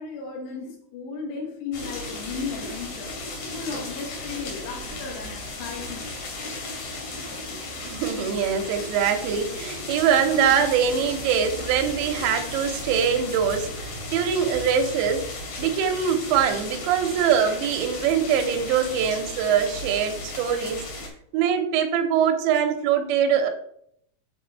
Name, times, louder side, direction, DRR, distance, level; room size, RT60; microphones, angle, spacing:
voice 1, 0.0-3.1 3.5-6.2, left 5 dB, 75° left, 0 dB, 3.6 m, -35 dB
sound 1, 1.7-21.1, left 2 dB, 55° left, 3.9 m, -35 dB
voice 2, 7.8-15.3 15.6-20.8 21.3-23.5, right 8 dB, 85° right, 5 dB, 3.0 m, -23 dB
8.4 x 3.9 x 4.5 m, 0.69 s
omnidirectional pair, 4.9 m